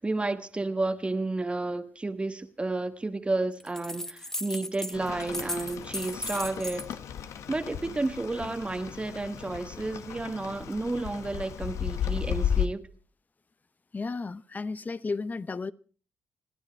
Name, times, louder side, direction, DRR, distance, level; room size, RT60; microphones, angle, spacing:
voice 1, 0.0-6.9 7.5-12.8, right 2 dB, 20° right, 1.3 m, -31 dB
sound 1, 3.6-5.0 5.2-6.9, left 1 dB, 10° left, 0.9 m, -36 dB
Rain, 4.9-12.7, left 9 dB, 75° left, 1.2 m, -34 dB
voice 2, 13.9-15.7, left 4 dB, 35° left, 0.8 m, -33 dB
28.5 x 9.8 x 4.4 m
cardioid pair, 70°, 5 cm